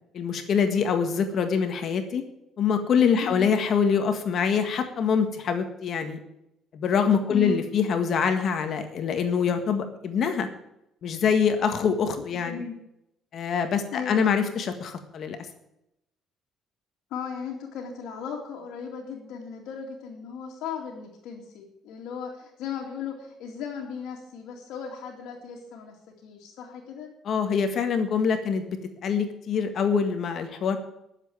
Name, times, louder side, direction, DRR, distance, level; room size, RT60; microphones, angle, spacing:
voice 1, 0.1-2.2 2.6-6.2 6.7-10.5 11.0-12.6 13.3-15.4 27.2-30.8, left 6 dB, 55° left, 7 dB, 1.7 m, -25 dB
voice 2, 3.2-3.5 7.3-7.6 12.5-12.7 13.9-14.5 17.1-26.0 26.2-27.1, left 6 dB, 85° left, -2 dB, 2.5 m, -36 dB
12.0 x 7.5 x 8.8 m, 0.83 s
cardioid pair, 105°, 0 cm